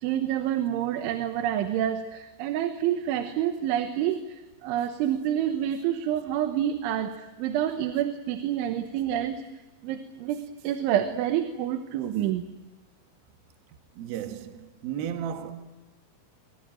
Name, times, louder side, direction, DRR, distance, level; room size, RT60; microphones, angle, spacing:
voice 1, 0.0-4.2 4.6-7.1 7.4-9.4 9.8-12.4, right 11 dB, 85° right, 3.5 m, -28 dB
voice 2, 14.0-15.5, right 9 dB, 60° right, 3.0 m, -34 dB
24.5 x 23.0 x 9.0 m
omnidirectional pair, 5.3 m